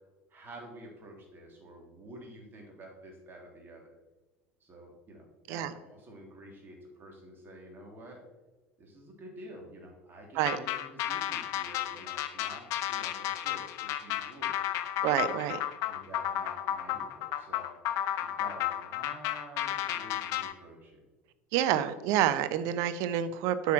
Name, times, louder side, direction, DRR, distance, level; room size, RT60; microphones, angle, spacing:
voice 1, 0.3-3.9 4.6-8.2 8.8-14.6 15.9-17.7 18.2-21.0, right 1 dB, 30° right, 0 dB, 3.2 m, -49 dB
sound 1, 10.4-20.5, left 12 dB, 50° left, 0.7 m, -33 dB
voice 2, 15.0-15.6 21.5-23.7, right 11 dB, 55° right, 12 dB, 0.7 m, -28 dB
8.4 x 5.7 x 5.9 m, 1.1 s
figure-of-eight pair, 70°, 7 cm